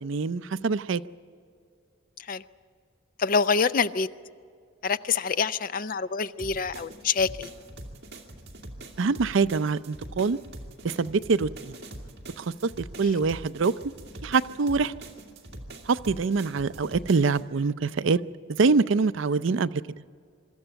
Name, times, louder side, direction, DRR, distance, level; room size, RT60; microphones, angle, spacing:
voice 1, 0.0-1.0 9.0-10.4 10.8-11.7 12.4-13.7 14.2-14.9 15.9-18.2 18.5-19.7, right 4 dB, 70° right, 15 dB, 0.5 m, -24 dB
voice 2, 3.2-4.1 4.8-7.5 13.0-13.2, left 5 dB, 40° left, 14 dB, 0.5 m, -26 dB
sound 1, 6.4-17.4, right 1 dB, 55° right, 2.3 m, -43 dB
24.0 x 13.5 x 8.9 m, 2.2 s
head